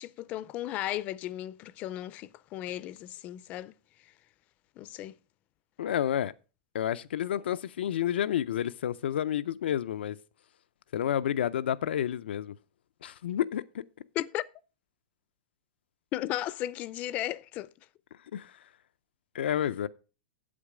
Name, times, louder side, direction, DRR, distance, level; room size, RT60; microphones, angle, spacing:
voice 1, 0.0-4.1 4.8-5.1 14.2-14.5 16.1-17.7, left 14 dB, 25° left, 0.4 m, -35 dB
voice 2, 5.8-6.3 6.7-10.2 10.9-12.5 13.0-13.8 18.3-18.7 19.3-19.9, left 10 dB, 85° left, 0.5 m, -30 dB
8.6 x 8.1 x 4.9 m
supercardioid pair, 160°, 6 cm